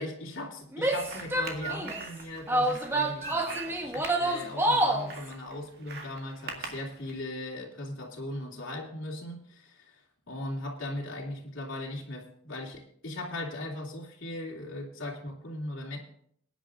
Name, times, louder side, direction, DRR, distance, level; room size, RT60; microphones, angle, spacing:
voice 1, 0.0-9.9 10.3-16.0, left 1 dB, 70° left, -1 dB, 2.8 m, -38 dB
Female speech woman speaking / Yell, 0.7-2.0 2.5-5.1, right 1 dB, 10° right, 1.0 m, -28 dB
sound 1, 0.9-7.2, right 4 dB, 50° right, 2.0 m, -42 dB
21.5 x 10.5 x 2.6 m, 0.66 s
head